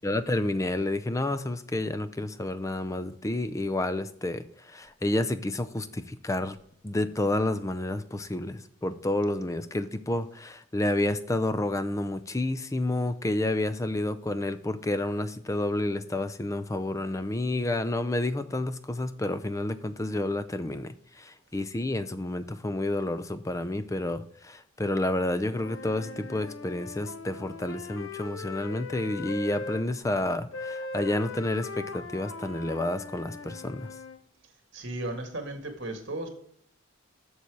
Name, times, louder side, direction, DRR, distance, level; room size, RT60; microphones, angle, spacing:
voice 1, 0.0-6.6 6.8-33.9, left 1 dB, 15° left, 13 dB, 0.4 m, -30 dB
Wind instrument woodwind instrument, 25.4-29.8 30.5-34.2, left 3 dB, 65° left, 0.8 m, -40 dB
voice 2, 34.7-36.3, right 1 dB, 55° right, 5 dB, 1.8 m, -35 dB
7.1 x 6.9 x 4.7 m, 0.64 s
head